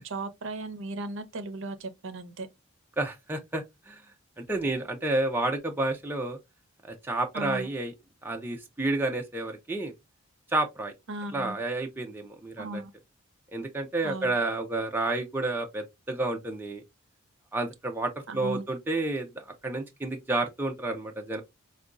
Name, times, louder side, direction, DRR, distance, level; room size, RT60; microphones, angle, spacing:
voice 1, 0.0-2.5 7.3-7.7 11.1-11.6 12.6-12.9 14.0-14.3 18.3-18.6, right 2 dB, 60° right, 0.6 m, -36 dB
voice 2, 3.0-4.0 4.4-6.4 6.9-7.9 8.2-9.9 10.5-10.9 11.3-12.8 13.5-16.8 17.5-21.4, right 2 dB, 10° right, 0.5 m, -30 dB
4.9 x 2.2 x 2.4 m
head